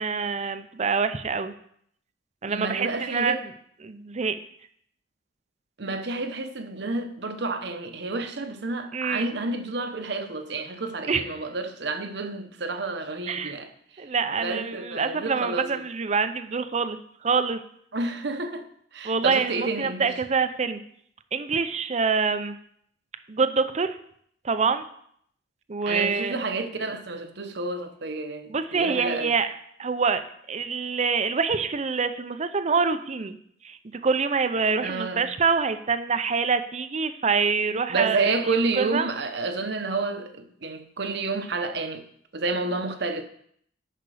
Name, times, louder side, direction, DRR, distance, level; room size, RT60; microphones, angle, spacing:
voice 1, 0.0-1.5 2.4-3.4 3.8-4.4 8.9-9.3 11.1-11.2 13.3-13.5 14.0-17.0 17.2-17.6 19.0-20.8 21.3-22.6 23.3-24.0 24.4-24.9 25.7-26.4 28.5-29.5 29.8-30.2 30.5-33.4 33.6-33.8 34.0-39.1, right 5 dB, 40° right, 0.6 m, -25 dB
voice 2, 2.5-3.4 5.8-15.9 17.9-18.7 18.9-20.1 25.9-29.3 34.8-35.3 37.9-42.0 42.3-43.2, right 3 dB, 65° right, 1.0 m, -30 dB
10.0 x 5.8 x 4.9 m
head